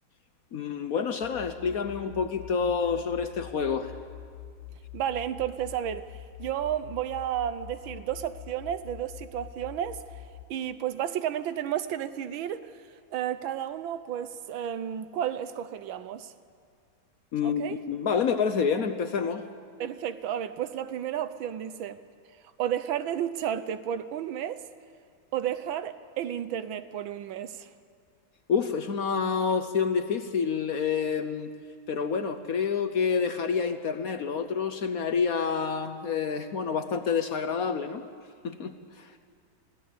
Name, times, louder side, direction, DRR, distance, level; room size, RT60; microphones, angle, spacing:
voice 1, 0.5-3.9 17.3-19.4 28.5-31.5 31.9-38.0 38.4-39.1, left 6 dB, 60° left, 1.0 m, -28 dB
sound 1, 1.2-10.5, left 11 dB, 75° left, 1.4 m, -45 dB
voice 2, 4.9-6.1 6.4-10.0 10.5-12.7 13.1-16.3 17.4-17.8 19.8-22.0 22.6-24.6 25.3-27.7, right 10 dB, 75° right, 1.6 m, -32 dB
24.5 x 16.0 x 8.3 m
omnidirectional pair, 2.2 m